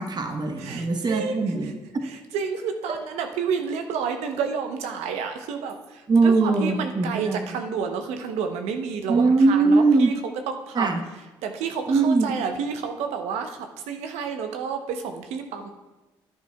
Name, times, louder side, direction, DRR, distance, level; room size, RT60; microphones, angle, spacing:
voice 1, 0.0-2.0 6.1-7.4 9.1-10.1 10.7-11.0 11.9-12.3, right 3 dB, 40° right, 5 dB, 1.1 m, -21 dB
voice 2, 0.6-1.5 2.0-10.2 10.5-10.9 11.4-15.7, right 6 dB, 75° right, 6 dB, 0.9 m, -30 dB
11.5 x 10.5 x 2.3 m, 1.1 s
hypercardioid pair, 50°, 11 cm